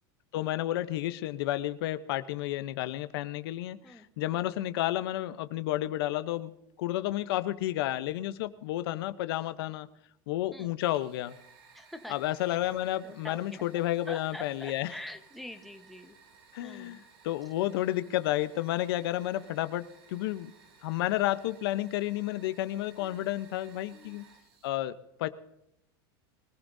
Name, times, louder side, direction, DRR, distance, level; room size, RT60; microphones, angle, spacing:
voice 1, 0.3-6.5 6.8-9.9 10.3-11.4 12.1-14.9 16.5-20.5 20.8-24.2 24.6-25.3, left 14 dB, 75° left, 12 dB, 0.8 m, -31 dB
Fire, 10.8-24.7, right 5 dB, 70° right, 3.2 m, -58 dB
voice 2, 11.7-12.2 13.0-13.6 14.1-16.2 16.6-17.1 23.0-23.2 23.9-24.2, left 1 dB, ahead, 5 dB, 1.1 m, -45 dB
23.5 x 15.0 x 2.7 m, 0.79 s
supercardioid pair, 135°, 13 cm